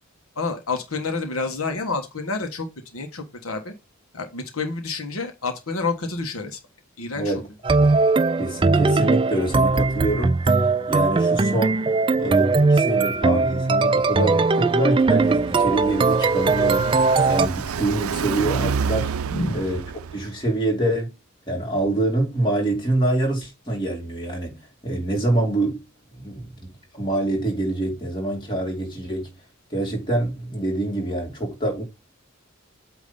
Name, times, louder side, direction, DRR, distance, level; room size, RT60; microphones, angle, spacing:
voice 1, 0.4-2.7 2.9-3.7 4.1-6.6 7.0-7.3 19.3-19.6, left 3 dB, 85° left, 1.3 m, -28 dB
voice 2, 7.1-7.9 8.4-11.8 12.2-16.9 17.3-19.1 19.5-19.8 20.1-21.1 21.5-24.6 24.8-25.8 26.1-29.3 29.7-31.8, right 2 dB, 20° left, 2.8 m, -26 dB
sound 1, 7.6-17.5, right 3 dB, 25° right, 0.3 m, -20 dB
Car passing by, 15.0-20.5, right 6 dB, 85° right, 0.4 m, -29 dB
8.5 x 3.0 x 5.4 m
head